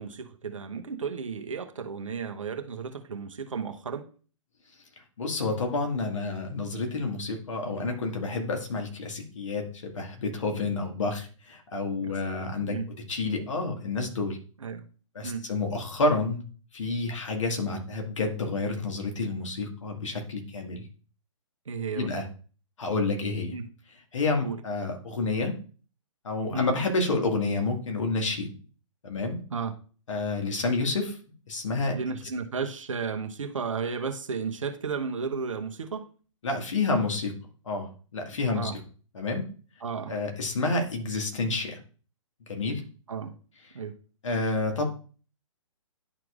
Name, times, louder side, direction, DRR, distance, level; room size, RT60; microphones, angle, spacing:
voice 1, 0.0-4.1 12.0-12.9 14.6-14.8 15.2-15.5 21.7-22.1 23.5-23.7 24.4-24.6 26.5-26.7 29.5-29.7 31.9-36.1 38.5-38.8 39.8-40.1 43.1-43.3 43.7-44.0, right 5 dB, 70° right, 1.0 m, -33 dB
voice 2, 5.2-12.7 13.1-14.4 15.2-16.4 16.7-20.9 22.0-22.3 22.8-23.5 24.1-25.5 26.2-28.5 29.0-29.4 30.1-31.2 31.5-32.0 36.4-37.3 37.7-38.7 39.1-39.4 40.1-41.8 42.5-42.8 44.2-44.9, left 3 dB, 65° left, 1.9 m, -29 dB
11.0 x 4.6 x 2.5 m
figure-of-eight pair, 130°, 17 cm